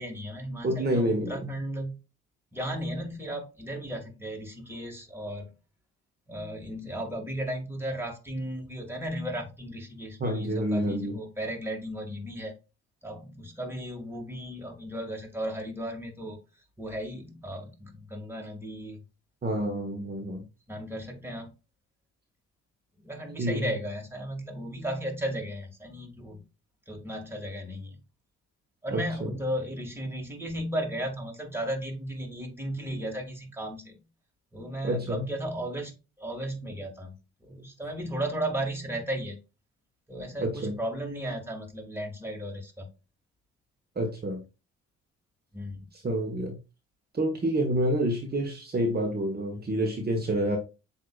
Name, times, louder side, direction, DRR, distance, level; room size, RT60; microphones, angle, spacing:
voice 1, 0.0-2.0 2.5-5.5 6.3-12.5 13.0-16.4 16.8-19.0 20.7-21.5 23.0-26.4 26.9-28.0 28.8-34.0 34.5-37.1 37.4-39.4 40.1-42.9 45.5-45.8, right 1 dB, 10° right, 2 dB, 1.8 m, -35 dB
voice 2, 0.6-1.5 10.2-11.2 19.4-20.4 23.4-23.7 28.9-29.3 34.8-35.2 40.4-40.8 44.0-44.4 45.9-46.6 47.1-50.6, right 1 dB, 35° right, 2 dB, 1.1 m, -28 dB
7.5 x 2.7 x 2.3 m, 0.29 s
supercardioid pair, 65°, 30 cm